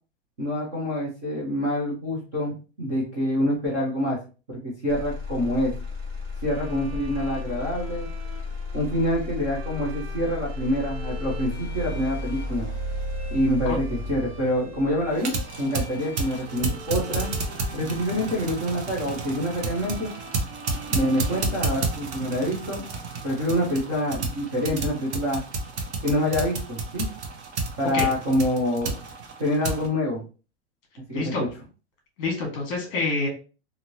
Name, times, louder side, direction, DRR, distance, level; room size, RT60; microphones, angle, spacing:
voice 1, 0.4-4.2 4.5-5.7 6.4-8.1 8.7-12.7 13.3-17.3 17.7-20.1 20.9-22.8 23.2-25.4 26.0-27.0 27.8-29.0 29.4-30.2 31.1-31.3, equal, 20° right, -6 dB, 0.4 m, -26 dB
Motor vehicle (road), 4.9-18.9 19.4-19.9, left 2 dB, 45° right, 1.6 m, -34 dB
Bowed string instrument, 6.4-22.3, equal, 65° right, 1.4 m, -44 dB
sound 1, 15.1-29.9, right 3 dB, 85° right, 0.9 m, -31 dB
voice 2, 31.1-31.4 32.2-33.3, left 3 dB, 30° left, 1 dB, 1.2 m, -27 dB
2.9 x 2.6 x 2.6 m, 0.34 s
supercardioid pair, 180°, 33 cm